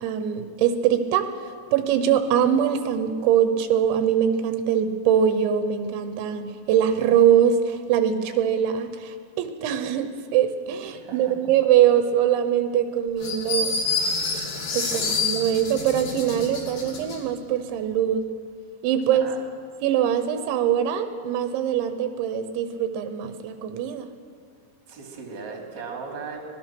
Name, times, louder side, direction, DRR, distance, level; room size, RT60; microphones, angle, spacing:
voice 1, 0.0-13.8 14.7-18.2 18.8-19.3 19.8-24.1, right 9 dB, 85° right, 9 dB, 3.4 m, -22 dB
voice 2, 11.0-11.3 14.8-15.2 19.1-19.4 24.9-26.4, right 5 dB, 30° right, 1 dB, 2.8 m, -38 dB
sound 1, 13.2-17.2, left 4 dB, 55° left, 4.1 m, -27 dB
25.0 x 18.5 x 6.1 m, 2.2 s
omnidirectional pair, 5.3 m